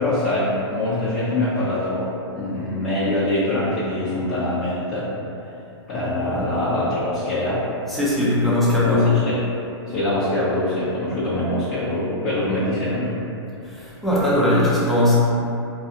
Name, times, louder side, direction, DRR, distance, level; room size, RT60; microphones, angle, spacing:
voice 1, 0.0-5.1 5.9-7.6 8.9-9.4 9.9-13.2, left 1 dB, 35° left, -13 dB, 0.7 m, -24 dB
voice 2, 7.9-9.1 13.6-15.2, left 1 dB, ahead, -9 dB, 0.6 m, -19 dB
2.3 x 2.2 x 2.8 m, 2.8 s
hypercardioid pair, 120°, 15 cm